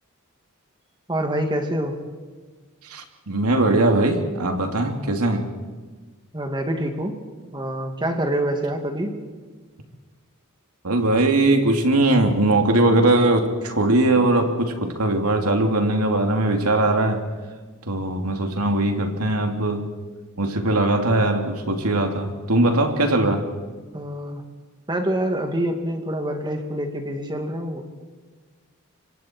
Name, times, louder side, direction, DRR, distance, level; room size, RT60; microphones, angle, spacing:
voice 1, 1.1-2.0 6.3-7.2 7.5-9.2 23.9-24.4 24.9-27.8, right 1 dB, 20° right, 2.5 m, -26 dB
voice 2, 2.9-5.5 10.8-17.2 17.9-19.9 20.4-23.5, right 2 dB, 90° right, 2.8 m, -20 dB
27.0 x 25.0 x 4.6 m
head